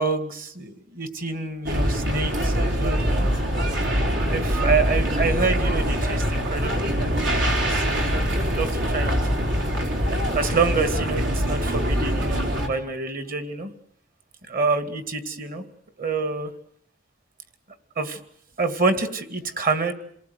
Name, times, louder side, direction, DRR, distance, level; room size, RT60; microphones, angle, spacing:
voice 1, 0.0-3.3 4.0-9.7 10.3-13.7 14.5-15.6 16.0-16.5 18.0-18.2 18.6-19.9, right 4 dB, 50° right, 10 dB, 2.3 m, -27 dB
sound 1, 1.6-12.7, equal, 80° right, 3.9 m, -23 dB
28.0 x 18.5 x 9.5 m, 0.68 s
head